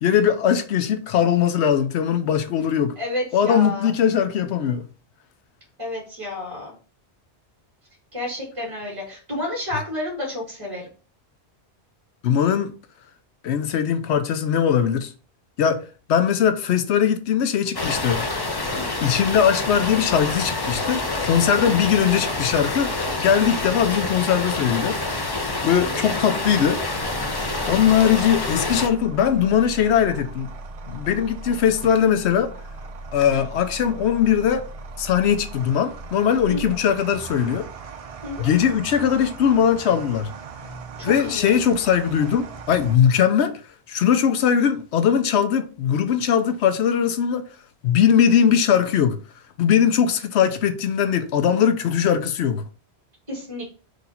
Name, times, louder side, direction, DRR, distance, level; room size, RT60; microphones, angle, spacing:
voice 1, 0.0-2.9 3.3-4.9 12.2-12.7 13.4-15.1 15.6-15.8 16.1-18.2 19.0-25.0 25.6-26.8 27.7-30.5 30.9-32.5 33.1-34.6 35.0-37.7 38.4-40.3 41.0-43.5 43.9-47.4 47.8-49.2 49.6-52.6, left 8 dB, 75° left, 0.8 m, -20 dB
voice 2, 3.0-3.9 5.8-6.7 8.1-10.9 18.7-18.9 21.5-21.8 25.8-25.9 33.3-33.4 36.5-36.7 38.2-38.5 41.0-41.5 53.3-53.7, left 1 dB, 30° right, 1.9 m, -31 dB
sound 1, 17.7-28.9, left 2 dB, 30° left, 0.5 m, -27 dB
sound 2, 27.0-43.0, right 3 dB, 65° right, 0.3 m, -38 dB
3.9 x 2.7 x 4.2 m
omnidirectional pair, 1.1 m